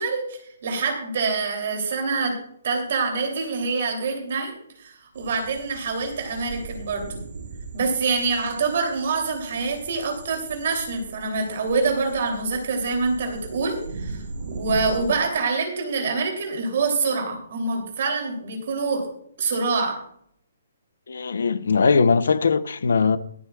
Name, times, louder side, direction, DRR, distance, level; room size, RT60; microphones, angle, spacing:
voice 1, 0.0-2.4 2.6-7.2 7.7-19.1 19.4-20.0, right 4 dB, 45° right, 3.0 m, -26 dB
sound 1, 5.1-15.2, right 4 dB, 90° right, 4.1 m, -39 dB
voice 2, 21.1-23.2, left 5 dB, 75° left, 0.8 m, -20 dB
22.0 x 8.0 x 2.4 m
hypercardioid pair, 175°, 0 cm